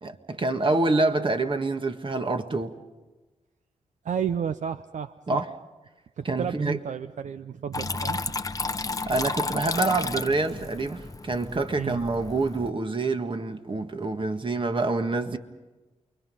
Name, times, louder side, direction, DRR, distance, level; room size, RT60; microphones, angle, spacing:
voice 1, 0.0-2.7 5.3-5.5 6.3-6.8 9.1-15.4, right 3 dB, 40° right, 1.7 m, -26 dB
voice 2, 4.0-5.4 6.2-8.2 11.8-12.0, right 8 dB, 70° right, 0.6 m, -32 dB
Water tap faucet / Trickle dribble, 7.7-12.7, left 3 dB, 25° left, 0.9 m, -32 dB
29.0 x 22.0 x 5.6 m
cardioid pair, 55°, 13 cm